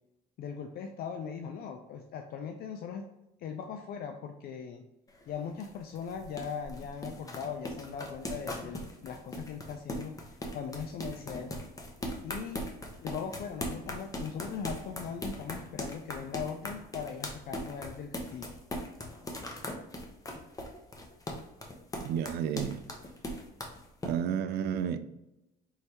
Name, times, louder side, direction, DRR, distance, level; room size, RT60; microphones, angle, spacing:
voice 1, 0.4-3.1 3.4-4.8 5.3-10.1 10.5-11.6 12.2-12.6 13.0-18.5, left 7 dB, 65° left, 0.4 m, -39 dB
sound 1, 5.1-24.1, left 1 dB, 20° left, 0.8 m, -39 dB
voice 2, 22.0-22.8 24.0-25.2, right 8 dB, 70° right, 0.4 m, -32 dB
4.7 x 3.3 x 2.8 m
cardioid pair, 110°, 17 cm